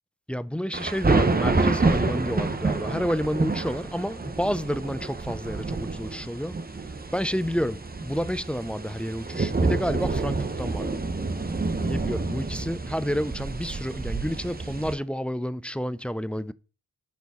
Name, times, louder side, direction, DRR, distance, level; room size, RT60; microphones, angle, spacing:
voice 1, 0.3-6.6 7.1-11.0 11.9-16.5, equal, 5° left, 0.3 m, -30 dB
sound 1, 0.7-15.0, right 3 dB, 25° right, 0.9 m, -28 dB
7.0 x 3.9 x 5.3 m
cardioid pair, 45°, 37 cm